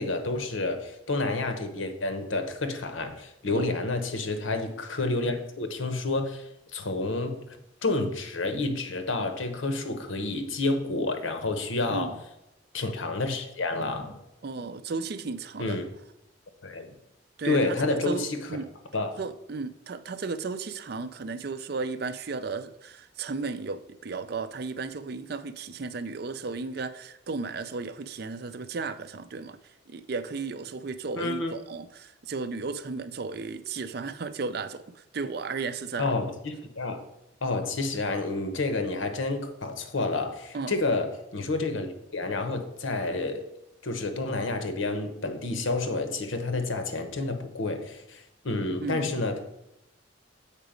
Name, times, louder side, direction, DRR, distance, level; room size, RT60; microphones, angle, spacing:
voice 1, 0.0-7.4 7.8-12.2 12.7-14.2 15.6-15.8 16.6-16.9 17.4-18.4 18.9-19.2 31.2-31.6 36.0-37.0 37.4-43.4 43.8-49.4, left 2 dB, 80° left, 7 dB, 1.0 m, -29 dB
voice 2, 11.9-12.2 14.4-15.8 17.4-18.7 19.2-36.1 40.5-40.8 48.8-49.2, right 4 dB, 50° right, 12 dB, 0.4 m, -34 dB
7.4 x 4.8 x 5.1 m, 0.88 s
head